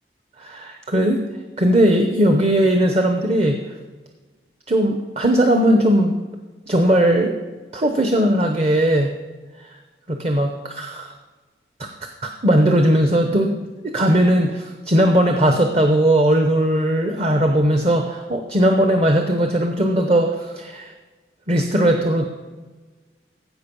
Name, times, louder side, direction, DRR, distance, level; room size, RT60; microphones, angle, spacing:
voice 1, 0.4-1.2 1.6-3.6 4.7-6.2 6.7-7.4 7.7-9.2 10.1-11.1 11.8-11.9 12.4-13.5 13.8-20.9 21.5-22.3, right 1 dB, 35° right, 5 dB, 0.7 m, -18 dB
15.0 x 5.3 x 5.3 m, 1.3 s
head